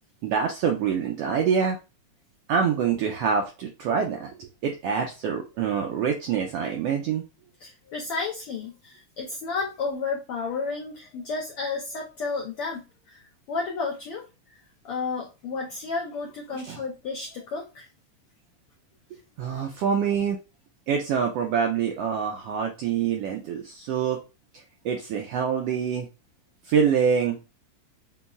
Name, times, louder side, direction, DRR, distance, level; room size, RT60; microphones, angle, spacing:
voice 1, 0.2-1.8 2.5-7.2 16.5-16.8 19.4-20.4 20.9-24.2 24.8-26.1 26.7-27.5, right 7 dB, 85° right, 2 dB, 1.4 m, -25 dB
voice 2, 7.6-14.2 14.8-17.9 19.4-19.6, left 4 dB, 85° left, 0 dB, 1.2 m, -32 dB
6.8 x 2.3 x 2.3 m, 0.29 s
omnidirectional pair, 3.4 m